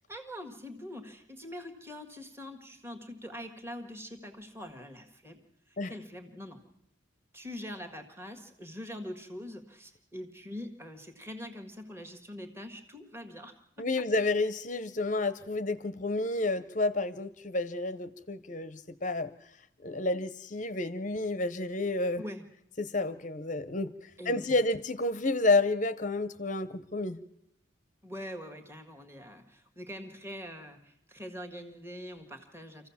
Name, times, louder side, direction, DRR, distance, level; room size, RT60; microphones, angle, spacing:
voice 1, 0.1-5.4 5.7-6.6 7.3-14.0 22.2-22.4 24.2-24.6 28.0-32.9, equal, 10° right, 4 dB, 1.7 m, -43 dB
voice 2, 13.8-19.3 19.8-22.2 22.8-27.2, left 2 dB, 40° left, 13 dB, 0.7 m, -30 dB
26.0 x 15.0 x 7.2 m, 0.79 s
head